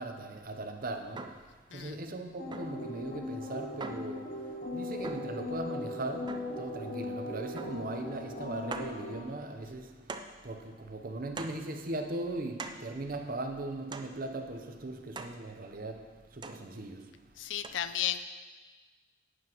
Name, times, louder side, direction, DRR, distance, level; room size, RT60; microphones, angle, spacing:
voice 1, 0.0-17.3, right 2 dB, 50° right, 0.8 m, -39 dB
Wood rod hit floor, 1.2-1.5 2.5-2.9 3.8-4.2 5.0-5.4 6.3-6.6 7.6-7.9 8.2-8.3 8.7-9.0 10.1-10.4 11.4-11.7 12.6-12.9 13.9-14.2 15.1-15.4 16.4-16.7 17.6-17.7, right 3 dB, 25° right, 0.5 m, -42 dB
sound 1, 2.4-9.3, left 1 dB, 45° left, 1.0 m, -39 dB
voice 2, 17.4-18.3, left 10 dB, 90° left, 0.5 m, -34 dB
11.0 x 9.7 x 3.0 m
head